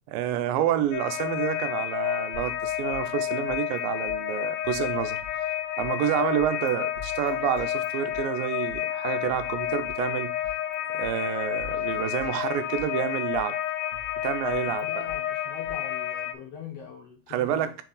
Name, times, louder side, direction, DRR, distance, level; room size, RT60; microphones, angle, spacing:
voice 1, 0.1-5.2 5.8-10.3 10.9-13.6 14.2-14.9 17.3-17.7, right 10 dB, 80° right, 2.4 m, -28 dB
sound 1, 0.9-16.3, left 11 dB, 80° left, 1.9 m, -30 dB
sound 2, 2.3-3.8 4.0-4.2 4.6-5.9 6.4-6.7 6.9-8.8 9.3-10.7 11.0-11.1 11.6-13.0 13.3-15.2 15.6-15.8, left 5 dB, 45° right, 2.7 m, -46 dB
voice 2, 14.8-17.8, left 8 dB, 60° left, 1.7 m, -42 dB
6.1 x 4.5 x 3.8 m
omnidirectional pair, 4.1 m